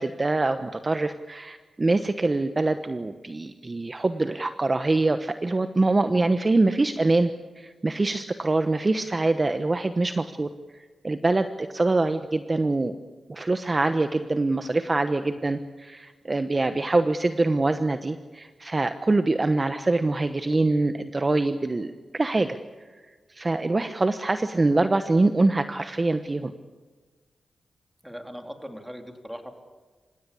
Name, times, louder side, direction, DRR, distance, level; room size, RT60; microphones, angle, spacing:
voice 1, 0.0-7.3 7.6-13.0 13.3-22.6 23.3-26.5, right 2 dB, 35° right, 9 dB, 1.1 m, -24 dB
voice 2, 28.0-29.5, equal, 5° right, 4 dB, 3.6 m, -39 dB
27.5 x 16.5 x 8.4 m, 1.4 s
cardioid pair, 65°, 0 cm